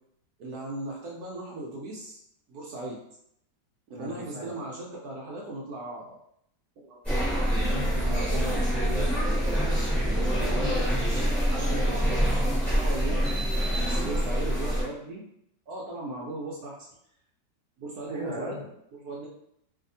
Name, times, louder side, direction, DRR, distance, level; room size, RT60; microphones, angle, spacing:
voice 1, 0.4-2.2 2.5-3.0 3.9-6.2 6.8-7.0 11.5-13.1 13.7-15.2 15.7-16.8 17.8-18.6 18.9-19.3, right 2 dB, 70° right, -3 dB, 1.0 m, -37 dB
voice 2, 3.9-4.5 7.6-12.3 18.1-18.7, equal, 25° right, -6 dB, 0.5 m, -38 dB
sound 1, 7.0-14.8, equal, ahead, 0.9 m, -25 dB
2.7 x 2.6 x 2.6 m, 0.74 s
omnidirectional pair, 1.9 m